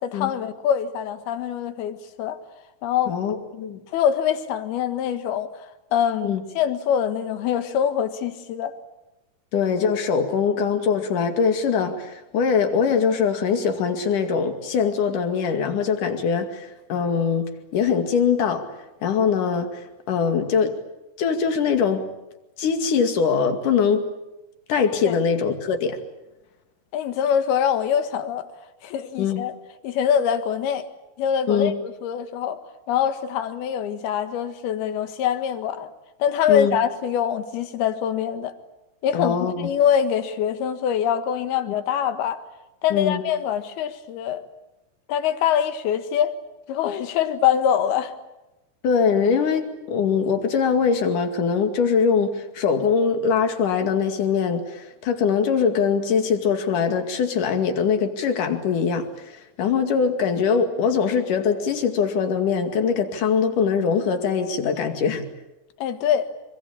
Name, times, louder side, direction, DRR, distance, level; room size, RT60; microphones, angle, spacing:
voice 1, 0.0-2.4 2.8-3.2 3.9-5.7 5.9-8.7 25.0-25.2 26.9-28.5 28.8-29.5 29.8-30.9 31.2-32.6 32.9-35.9 36.2-38.5 39.0-42.4 42.8-44.4 45.1-46.4 46.7-48.1 65.8-66.3, left 9 dB, 75° left, 3.4 m, -24 dB
voice 2, 3.1-3.8 6.2-6.4 9.5-18.7 19.0-20.8 21.2-22.1 22.6-24.1 24.7-26.0 29.2-29.4 31.5-31.7 36.5-36.8 39.1-39.7 42.9-43.2 48.8-65.3, left 6 dB, 55° left, 3.6 m, -22 dB
26.5 x 23.5 x 8.6 m
omnidirectional pair, 4.6 m